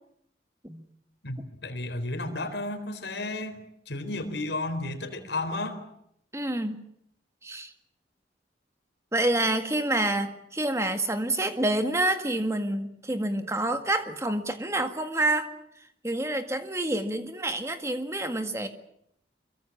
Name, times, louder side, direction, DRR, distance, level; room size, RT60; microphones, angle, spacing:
voice 1, 1.2-3.6 3.9-5.8, left 2 dB, 75° left, 8 dB, 4.0 m, -33 dB
voice 2, 6.3-6.8 7.4-7.7 9.1-15.5 16.0-18.7, right 1 dB, 15° right, 8 dB, 1.8 m, -28 dB
25.0 x 23.0 x 7.3 m, 0.74 s
head